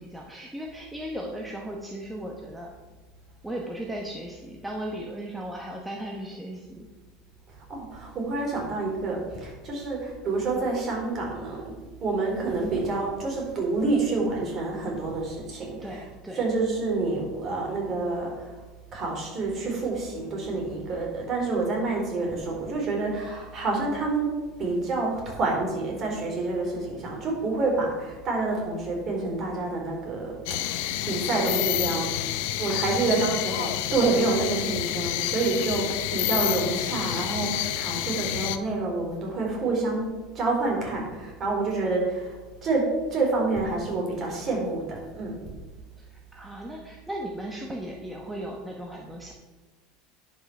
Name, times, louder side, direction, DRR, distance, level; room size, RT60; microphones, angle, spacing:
voice 1, 0.0-2.7 3.4-6.9 15.8-16.5 29.2-29.4 32.7-33.4 46.0-49.3, right 1 dB, 5° right, -1 dB, 1.2 m, -37 dB
voice 2, 7.7-11.7 12.0-16.0 16.4-18.6 18.9-40.1 40.3-45.4, right 3 dB, 35° right, -1 dB, 3.9 m, -28 dB
sound 1, 30.5-38.6, left 13 dB, 75° left, 0.7 m, -29 dB
10.5 x 5.8 x 6.1 m, 1.2 s
supercardioid pair, 130°, 0 cm